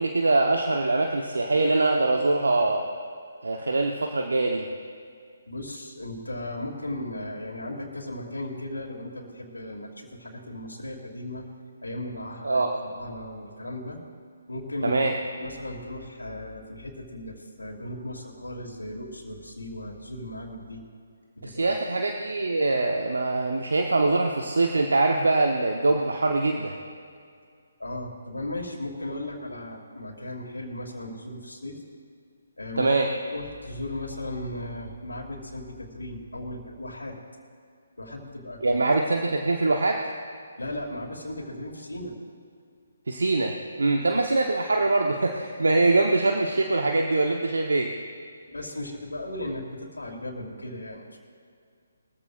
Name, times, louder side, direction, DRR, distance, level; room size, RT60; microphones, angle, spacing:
voice 1, 0.0-2.9 3.4-4.6 12.4-12.7 14.8-15.1 21.4-26.7 32.8-33.1 38.6-40.0 43.1-43.5 43.8-47.9, right 2 dB, 75° right, 2 dB, 1.0 m, -23 dB
voice 2, 5.5-11.4 11.8-14.0 14.5-15.1 15.3-20.8 21.4-21.8 27.8-31.8 32.6-32.9 33.3-37.2 38.0-38.8 40.6-42.1 44.0-44.2 48.5-49.6 49.9-51.2, left 1 dB, 80° left, 0 dB, 2.8 m, -36 dB
22.5 x 14.5 x 2.6 m, 2.2 s
figure-of-eight pair, 140°, 0 cm